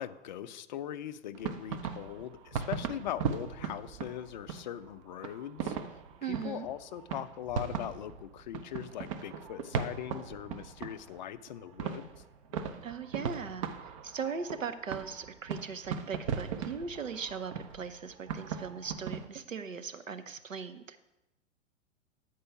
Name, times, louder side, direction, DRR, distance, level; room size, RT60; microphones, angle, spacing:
voice 1, 0.0-5.8 6.2-12.1, left 11 dB, 40° left, 12 dB, 0.4 m, -40 dB
sound 1, 1.3-4.9 5.2-11.2 11.5-19.3, right 6 dB, 25° right, 0.4 m, -38 dB
voice 2, 6.2-6.7 12.8-21.0, right 6 dB, 85° right, 9 dB, 0.8 m, -39 dB
8.5 x 4.6 x 5.9 m, 0.89 s
figure-of-eight pair, 110°, 38 cm